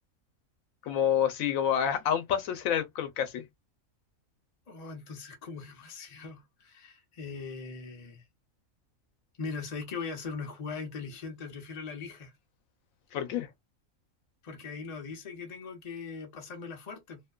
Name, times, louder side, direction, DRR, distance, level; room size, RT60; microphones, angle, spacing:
voice 1, 0.8-3.5 13.1-13.5, left 9 dB, 90° left, 1.0 m, -28 dB
voice 2, 4.7-8.2 9.4-12.3 14.4-17.2, left 4 dB, 35° left, 0.7 m, -40 dB
2.7 x 2.1 x 2.2 m
omnidirectional pair, 1.4 m